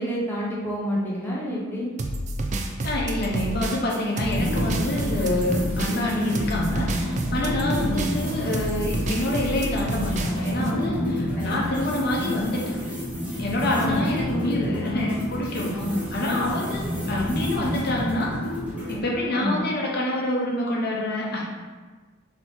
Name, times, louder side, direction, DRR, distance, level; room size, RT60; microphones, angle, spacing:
voice 1, 0.0-1.9 7.9-8.0 11.4-11.5 12.2-12.4 13.7-14.0 15.7-17.3 19.3-19.6, equal, 10° left, -6 dB, 0.7 m, -29 dB
sound 1, 2.0-10.7, right 1 dB, 35° right, 0.3 m, -29 dB
voice 2, 2.8-12.8 13.4-15.8 16.1-18.4 18.9-21.4, left 1 dB, 50° left, -2 dB, 0.7 m, -27 dB
sound 2, 4.2-19.0, equal, 10° right, 1.0 m, -30 dB
3.6 x 2.9 x 4.2 m, 1.4 s
head